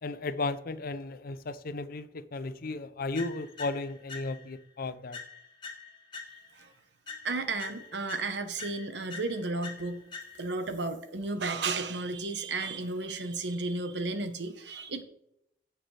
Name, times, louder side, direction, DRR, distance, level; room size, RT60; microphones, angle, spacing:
voice 1, 0.0-5.2, left 3 dB, 55° left, 0.6 m, -35 dB
sound 1, 3.1-4.6 5.1-6.7 7.1-10.7, left 5 dB, 25° left, 2.1 m, -45 dB
voice 2, 7.2-10.1 10.4-15.0, right 3 dB, 70° right, 1.1 m, -33 dB
16.5 x 5.9 x 3.4 m
head